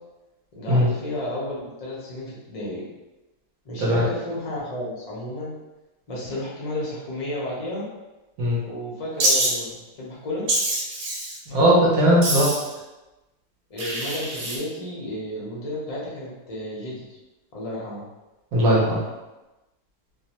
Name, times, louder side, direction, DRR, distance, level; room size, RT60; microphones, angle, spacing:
voice 1, 0.5-2.9 3.6-5.5 6.1-7.9 8.6-10.5 13.7-17.2 17.5-18.0, left 1 dB, 60° left, -5 dB, 0.3 m, -32 dB
Wild animals, 9.2-9.5 10.5-11.4 12.2-12.7 13.8-14.6, right 1 dB, 90° right, 1.3 m, -24 dB
voice 2, 11.5-12.5 18.5-19.0, equal, 70° right, -5 dB, 1.1 m, -18 dB
2.7 x 2.1 x 2.8 m, 1.1 s
omnidirectional pair, 1.7 m